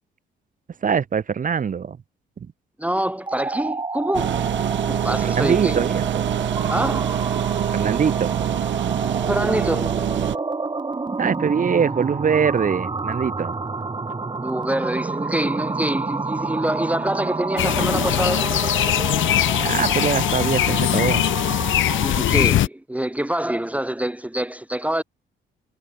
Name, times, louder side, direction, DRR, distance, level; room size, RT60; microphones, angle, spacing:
voice 1, 0.8-2.0 5.2-6.2 7.7-8.4 11.2-13.5 19.6-21.2, right 7 dB, 45° right, 1.4 m, -23 dB
voice 2, 2.8-4.4 4.9-5.8 6.7-7.1 9.2-10.0 14.4-18.4 22.0-25.0, right 1 dB, 5° right, 1.8 m, -25 dB
sound 1, 3.2-22.6, right 3 dB, 20° right, 2.2 m, -29 dB
sound 2, 4.1-10.4, right 11 dB, 70° right, 5.5 m, -25 dB
sound 3, 17.6-22.7, left 13 dB, 75° left, 1.8 m, -21 dB
cardioid pair, 90°, 20 cm